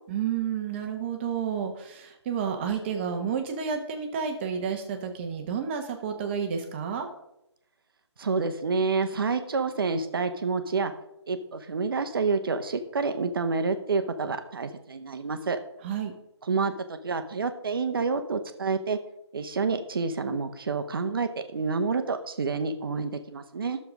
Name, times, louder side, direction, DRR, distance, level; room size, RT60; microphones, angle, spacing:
voice 1, 0.1-7.1 15.8-16.1, right 7 dB, 25° right, 5 dB, 1.2 m, -30 dB
voice 2, 8.2-10.9 11.3-15.6 16.5-19.0 19.3-23.8, right 4 dB, 50° right, 9 dB, 1.1 m, -28 dB
11.5 x 6.9 x 4.9 m, 0.85 s
figure-of-eight pair, 145°, 15 cm